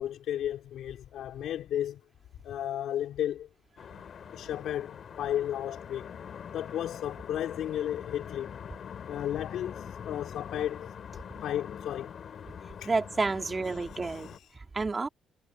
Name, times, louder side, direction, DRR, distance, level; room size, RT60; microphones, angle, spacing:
voice 1, 0.0-2.0 2.4-3.5 3.9-4.0 4.3-6.1 6.5-8.6 9.1-10.9 11.4-12.1 12.8-12.9 14.0-14.4, left 11 dB, 80° left, 3.2 m, -34 dB
sound 1, 3.8-14.4, left 7 dB, 55° left, 3.9 m, -44 dB
voice 2, 12.9-15.1, right 3 dB, 30° right, 2.4 m, -30 dB
cardioid pair, 90°, 0 cm